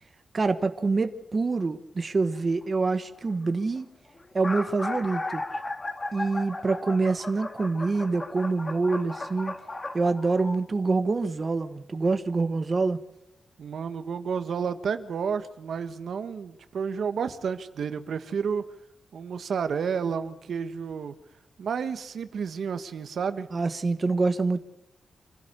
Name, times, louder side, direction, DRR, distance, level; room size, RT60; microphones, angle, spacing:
voice 1, 0.3-3.9 4.3-5.6 6.1-9.6 9.9-13.0 23.5-24.7, right 3 dB, 30° right, 9 dB, 1.2 m, -26 dB
sound 1, 2.3-2.6 3.5-3.6 3.8-3.9 4.2-10.6, left 2 dB, 25° left, 2.2 m, -35 dB
voice 2, 13.6-18.6 19.1-21.2 21.6-23.5, right 6 dB, 70° right, 10 dB, 1.5 m, -31 dB
26.5 x 16.0 x 6.8 m, 0.89 s
wide cardioid pair, 155°, 0 cm